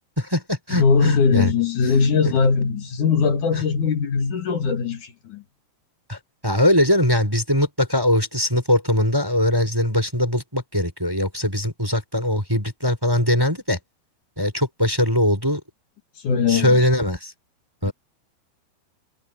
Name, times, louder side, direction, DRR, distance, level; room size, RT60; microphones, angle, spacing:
voice 1, 0.2-1.5 3.5-3.6 6.1-13.8 14.4-15.6 16.5-17.3 17.8-17.9, left 1 dB, 5° right, 4.8 m, -21 dB
voice 2, 0.7-5.4 16.2-16.9 17.8-17.9, left 5 dB, 50° left, 3.0 m, -20 dB
omnidirectional pair, 5.2 m